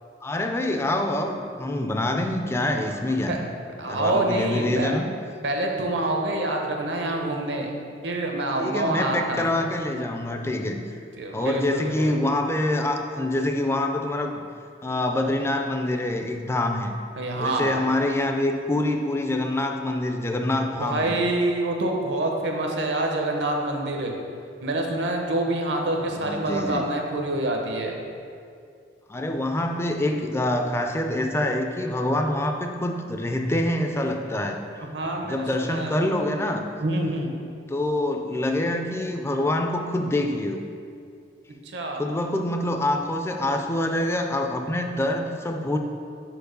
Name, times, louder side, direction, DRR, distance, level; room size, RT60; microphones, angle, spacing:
voice 1, 0.2-3.4 3.8-5.1 8.5-10.8 11.3-14.4 14.8-16.9 17.4-21.2 26.1-26.9 29.1-34.6 35.2-36.6 37.7-40.7 42.0-45.8, left 1 dB, 15° left, 4 dB, 0.3 m, -26 dB
voice 2, 3.8-4.9 5.4-7.7 8.0-9.6 11.2-12.1 17.2-17.7 20.8-24.1 24.6-28.0 34.9-35.9 36.8-37.3 41.7-42.0, right 2 dB, 75° right, 2 dB, 0.8 m, -26 dB
4.7 x 4.6 x 5.2 m, 2.3 s
head